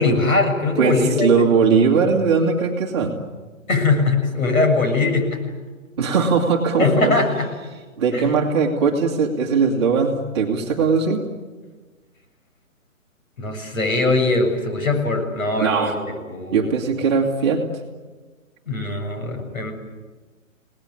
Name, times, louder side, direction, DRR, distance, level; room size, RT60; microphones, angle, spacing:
voice 1, 0.0-1.5 3.7-5.4 6.8-7.5 8.1-8.3 13.4-16.0 16.3-16.7 18.7-19.7, left 3 dB, 80° left, 5 dB, 7.4 m, -21 dB
voice 2, 0.8-3.2 6.0-7.2 8.0-11.2 15.6-16.0 16.5-17.6, right 5 dB, 20° right, -1 dB, 2.1 m, -19 dB
28.5 x 19.0 x 9.6 m, 1.3 s
hypercardioid pair, 175°, 41 cm